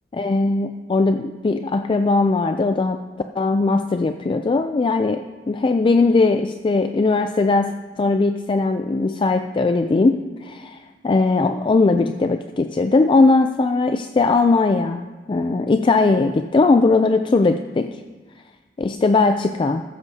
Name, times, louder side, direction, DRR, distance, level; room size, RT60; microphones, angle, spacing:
voice 1, 0.1-3.0 3.4-15.0 15.3-18.0 18.8-19.8, left 3 dB, 30° left, 8 dB, 0.3 m, -19 dB
15.0 x 13.0 x 2.8 m, 1.3 s
head